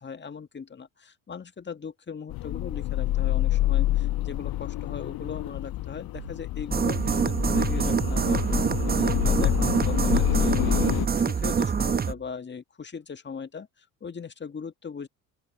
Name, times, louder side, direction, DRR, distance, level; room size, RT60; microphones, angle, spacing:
voice 1, 0.0-8.4 8.8-15.1, left 6 dB, 25° left, 1.7 m, -39 dB
sound 1, 2.3-11.1, left 15 dB, 50° left, 1.0 m, -27 dB
sound 2, 6.1-6.4 7.1-7.3 8.0-8.3 9.9-10.3 11.9-12.4, right 13 dB, 55° right, 3.6 m, -45 dB
sound 3, 6.7-12.1, right 6 dB, 20° right, 1.0 m, -25 dB
open air
hypercardioid pair, 70°, 45 cm